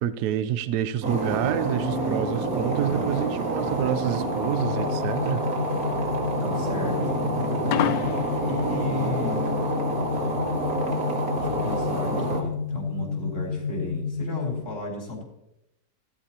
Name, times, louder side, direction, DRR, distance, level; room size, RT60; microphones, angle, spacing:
voice 1, 0.0-5.4, right 10 dB, 70° right, 13 dB, 1.1 m, -28 dB
sound 1, 1.0-12.4, right 2 dB, 55° right, 2.4 m, -28 dB
sound 2, 3.8-8.8, left 10 dB, 75° left, 1.2 m, -31 dB
sound 3, 4.6-14.6, left 6 dB, 60° left, 1.5 m, -30 dB
voice 2, 6.4-7.2 8.4-9.4 11.4-15.2, left 1 dB, 30° left, -3 dB, 3.8 m, -34 dB
16.0 x 14.0 x 2.9 m, 0.86 s
omnidirectional pair, 1.9 m